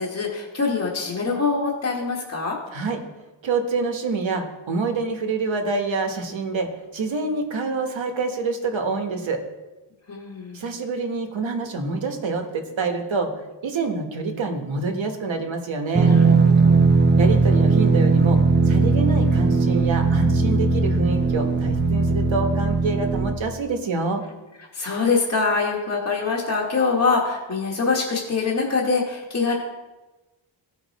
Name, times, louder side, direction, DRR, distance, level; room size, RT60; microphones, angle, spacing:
voice 1, 0.0-2.6 10.1-10.6 16.0-17.0 24.6-29.5, left 4 dB, 35° left, -4 dB, 1.3 m, -24 dB
voice 2, 3.4-9.4 10.5-13.3 13.6-16.2 17.2-18.4 18.6-24.2, right 3 dB, 75° right, 4 dB, 1.2 m, -26 dB
sound 1, 15.9-23.4, right 3 dB, 25° right, 0.6 m, -18 dB
15.0 x 5.1 x 4.0 m, 1.1 s
wide cardioid pair, 130°, 47 cm